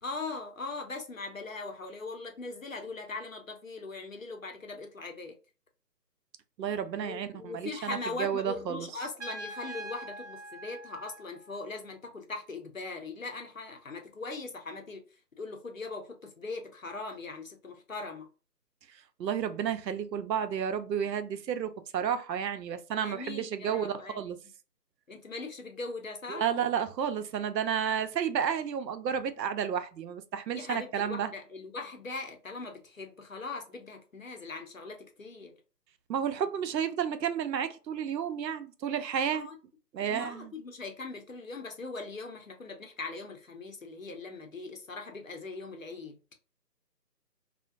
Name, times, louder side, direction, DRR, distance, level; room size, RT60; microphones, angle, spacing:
voice 1, 0.0-5.3 6.9-15.0 15.4-18.3 23.0-24.2 25.1-26.4 30.5-35.5 39.3-39.6 40.0-46.2, left 3 dB, 55° left, 0.5 m, -40 dB
voice 2, 6.6-8.9 19.2-24.4 26.3-31.3 36.1-39.5 39.9-40.5, right 8 dB, 85° right, 0.5 m, -31 dB
Trumpet, 9.2-11.8, right 2 dB, 45° right, 0.6 m, -44 dB
2.4 x 2.1 x 2.5 m
figure-of-eight pair, 175°, 49 cm